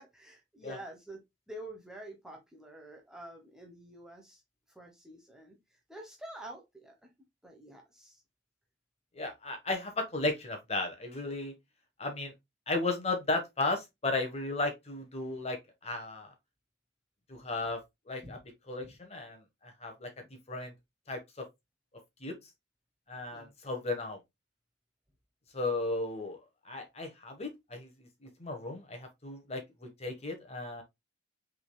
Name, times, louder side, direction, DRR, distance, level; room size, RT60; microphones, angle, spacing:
voice 1, 0.0-4.4 4.7-5.6 5.9-7.1 7.4-8.2 18.2-18.4 18.8-18.9 20.2-20.3 23.3-23.5, right 1 dB, 5° right, 0.9 m, -48 dB
voice 2, 9.1-11.5 12.0-12.3 12.7-15.6 15.8-16.3 17.3-17.8 18.1-18.4 18.7-20.1 20.5-20.7 21.1-21.4 22.2-22.4 23.1-24.2 25.5-26.4 26.6-30.8, left 2 dB, 35° left, 1.2 m, -35 dB
5.8 x 3.7 x 2.2 m
head